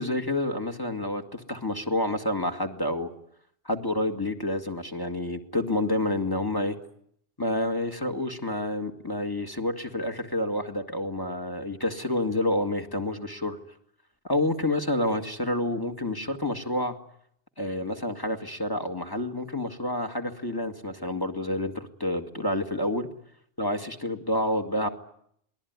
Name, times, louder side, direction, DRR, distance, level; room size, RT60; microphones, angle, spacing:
voice 1, 0.0-3.1 3.7-6.8 7.4-13.6 14.2-17.0 17.6-23.1 23.6-24.9, left 1 dB, 20° left, 5 dB, 2.0 m, -29 dB
27.5 x 20.5 x 9.6 m, 0.71 s
omnidirectional pair, 1.3 m